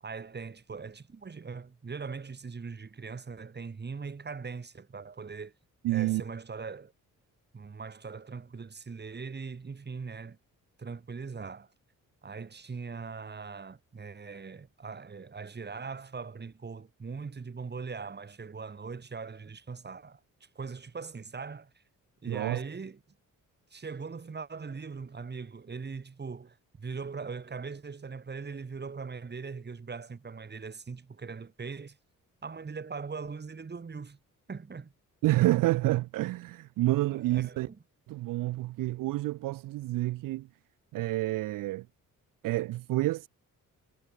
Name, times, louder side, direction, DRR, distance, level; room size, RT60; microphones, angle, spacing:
voice 1, 0.0-5.5 5.9-6.9 7.5-10.4 10.8-11.7 12.2-21.8 22.2-23.0 23.7-32.0 32.4-34.2 34.5-34.9 37.1-37.8, right 5 dB, 30° right, 1.8 m, -41 dB
voice 2, 5.8-6.2 22.3-22.6 35.2-37.7 38.1-40.5 40.9-41.9 42.4-43.3, right 17 dB, 75° right, 0.5 m, -28 dB
cardioid pair, 75°, 33 cm